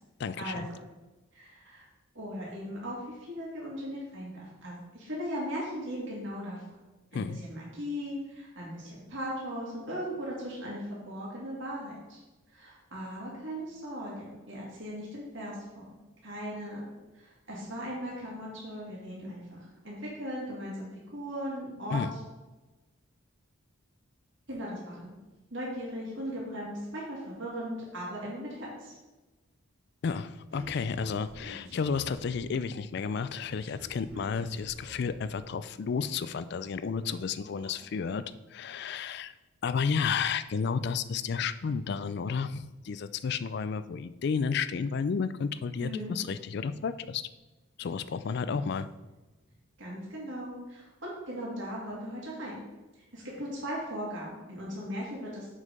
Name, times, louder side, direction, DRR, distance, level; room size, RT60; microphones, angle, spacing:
voice 1, 0.2-0.7 7.1-7.4 21.9-22.1 30.0-38.2 38.5-39.3 39.6-47.3 47.8-48.9, left 5 dB, 50° left, 14 dB, 0.3 m, -32 dB
voice 2, 1.3-1.9 2.1-6.6 7.1-12.2 12.5-16.0 16.2-16.8 17.1-22.0 24.5-25.2 25.5-28.9 32.4-32.5 45.8-46.1 48.4-48.6 49.8-52.6 53.1-55.5, equal, 60° right, -5 dB, 2.3 m, -38 dB
sound 1, 30.5-32.6 33.4-35.4 35.7-36.7 36.9-37.7, equal, 75° right, 1.8 m, -50 dB
6.5 x 5.4 x 5.2 m, 1.1 s
head